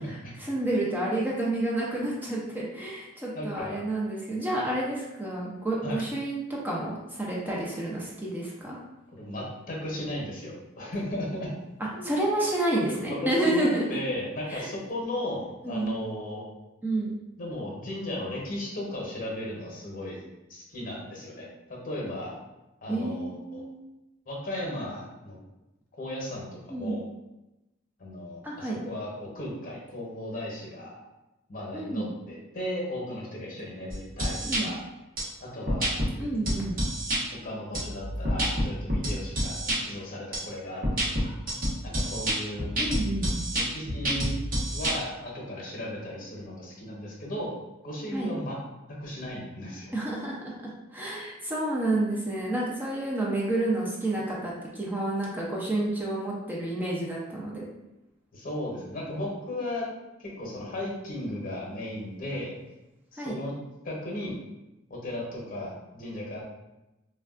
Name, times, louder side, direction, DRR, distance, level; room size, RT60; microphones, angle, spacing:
voice 1, 0.0-8.8 12.0-14.0 14.5-14.7 15.6-15.9 16.8-17.2 22.9-23.8 26.7-27.0 28.4-28.8 31.7-32.1 34.4-34.7 36.2-36.8 42.8-43.4 48.1-48.3 49.9-50.5 50.9-57.7 63.2-63.4, right 1 dB, 10° right, -5 dB, 0.4 m, -29 dB
voice 2, 3.3-3.8 5.8-6.0 9.1-11.5 11.9-12.2 13.1-16.4 17.4-20.2 20.5-22.4 22.8-23.6 24.3-25.4 26.0-27.0 28.0-31.0 31.5-34.8 35.5-36.0 37.4-41.3 41.8-42.7 43.7-44.4 44.7-47.5 47.8-48.6 49.0-49.9 58.3-59.9 60.2-62.6 63.1-63.5 63.8-64.4 64.9-66.4, left 1 dB, 45° left, -3 dB, 0.8 m, -36 dB
sound 1, 33.9-34.6 35.2-35.3 35.7-36.1 36.5-37.2 37.7-39.8 40.3-40.4 40.8-44.9, equal, 45° right, 0.8 m, -28 dB
3.4 x 2.2 x 2.4 m, 0.98 s
head